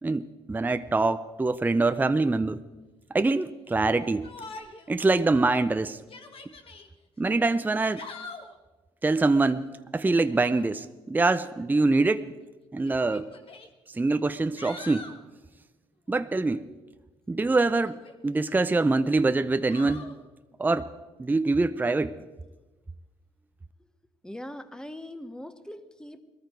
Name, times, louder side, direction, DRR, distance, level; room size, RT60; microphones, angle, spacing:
voice 1, 0.0-2.6 3.1-4.3 4.9-6.0 7.2-8.0 9.0-12.3 12.7-13.3 13.9-15.1 16.1-16.6 17.3-18.0 18.2-20.1 20.6-20.9 21.2-22.2, right 3 dB, 15° right, 11 dB, 0.6 m, -24 dB
Yell, 4.2-4.9 5.3-5.4 6.0-6.9 7.7-8.6 10.3-10.7 11.9-12.0 12.9-13.7 14.2-15.2 17.8-18.5 19.7-20.1, left 3 dB, 50° left, 1.8 m, -44 dB
voice 2, 24.2-26.2, left 1 dB, 5° left, 10 dB, 1.2 m, -41 dB
20.0 x 13.5 x 4.6 m, 1.2 s
supercardioid pair, 70°, 12 cm